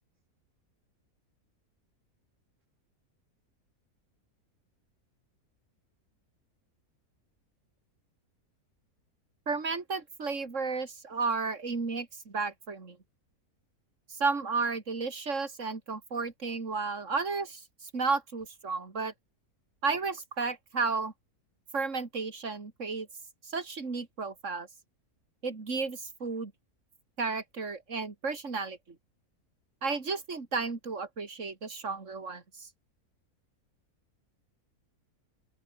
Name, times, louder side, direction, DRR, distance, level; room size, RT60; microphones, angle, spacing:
voice 1, 9.5-13.0 14.2-19.1 19.8-21.1 21.7-23.1 23.4-24.7 25.4-26.5 27.2-28.8 29.8-32.7, right 4 dB, 55° right, 3.1 m, -33 dB
open air
omnidirectional pair, 1.6 m